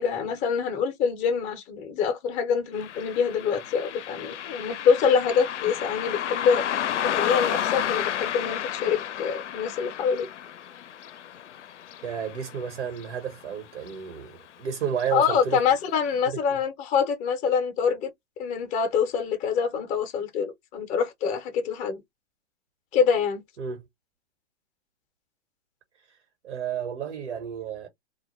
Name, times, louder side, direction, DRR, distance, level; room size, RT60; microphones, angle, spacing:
voice 1, 0.0-6.6 7.0-10.3 15.1-18.1 18.4-22.0 22.9-23.4, left 6 dB, 20° left, 0.6 m, -25 dB
Car passing by, 2.7-13.6 13.9-14.0 14.9-15.1 15.5-15.6 16.1-16.2, left 10 dB, 80° left, 0.5 m, -32 dB
voice 2, 12.0-15.6 16.3-16.6 23.6-23.8 26.1-27.9, right 8 dB, 70° right, 1.2 m, -32 dB
2.3 x 2.1 x 3.1 m
hypercardioid pair, 125°, 35 cm